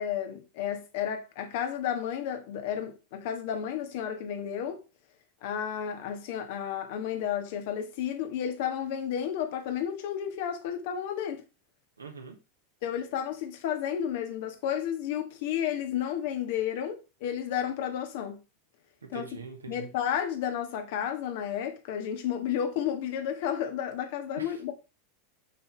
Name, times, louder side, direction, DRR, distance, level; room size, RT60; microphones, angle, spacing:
voice 1, 0.0-4.8 5.4-11.4 12.8-18.4 19.1-19.2 19.7-24.7, left 9 dB, 55° left, 1.5 m, -32 dB
voice 2, 12.0-12.4 19.1-19.9 24.4-24.6, right 5 dB, 80° right, 1.4 m, -42 dB
6.6 x 5.8 x 3.4 m
figure-of-eight pair, 85°, 0 cm